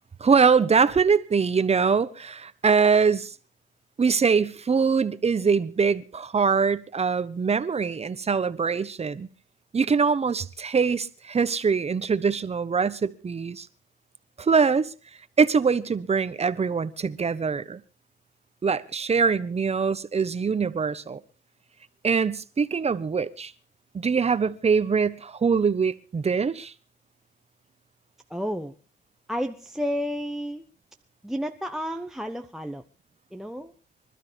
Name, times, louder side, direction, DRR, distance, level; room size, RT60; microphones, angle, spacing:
voice 1, 0.2-3.3 4.0-9.3 9.7-13.7 14.4-14.9 15.4-17.8 18.6-21.2 22.0-23.5 23.9-26.7, right 5 dB, 30° right, 1.1 m, -23 dB
voice 2, 28.3-28.7 29.3-30.6 31.2-32.8 33.3-33.7, equal, ahead, 1.0 m, -31 dB
25.5 x 12.5 x 3.5 m
cardioid pair, 90°, 20 cm